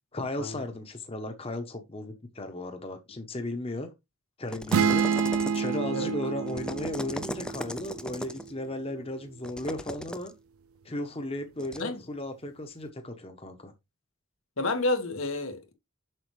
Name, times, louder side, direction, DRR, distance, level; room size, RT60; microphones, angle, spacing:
voice 1, 0.1-3.9 4.4-5.1 5.5-10.3 10.8-13.7, left 1 dB, 30° left, 0.9 m, -35 dB
sound 1, 4.5-5.9 6.5-8.5 9.4-10.3 11.6-11.8, left 1 dB, 5° left, 0.4 m, -38 dB
sound 2, 4.7-8.4, right 6 dB, 90° right, 0.4 m, -28 dB
voice 2, 14.6-15.7, left 2 dB, 85° left, 1.8 m, -30 dB
7.7 x 6.3 x 3.2 m
head